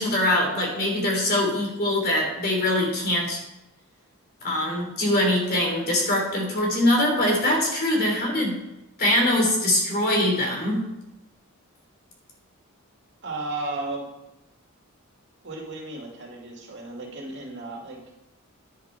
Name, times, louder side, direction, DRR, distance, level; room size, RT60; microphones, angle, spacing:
voice 1, 0.0-3.4 4.4-8.6 9.0-10.8, left 1 dB, 45° left, 0 dB, 3.2 m, -23 dB
voice 2, 13.2-14.1 15.4-18.0, right 2 dB, 55° right, -1 dB, 2.4 m, -34 dB
10.0 x 8.5 x 4.5 m, 0.90 s
head